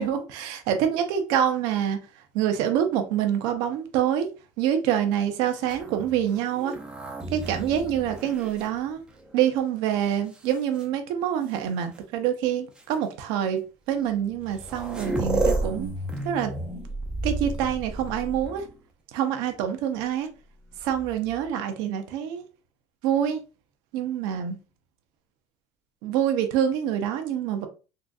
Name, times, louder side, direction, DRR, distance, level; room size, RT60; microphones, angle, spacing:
voice 1, 0.0-2.0 2.3-4.3 4.6-6.8 7.3-9.0 9.3-13.6 13.9-15.9 16.2-16.5 17.2-18.6 19.1-20.3 20.8-22.4 23.0-23.4 23.9-24.6 26.0-27.7, right 9 dB, 70° right, 0.6 m, -26 dB
sound 1, 5.6-9.4 10.1-10.8 11.9-12.0 12.8-12.9 14.1-14.2 14.4-18.8 20.8-21.5, right 2 dB, 10° right, 0.5 m, -32 dB
3.8 x 2.5 x 2.3 m
cardioid pair, 160°, 8 cm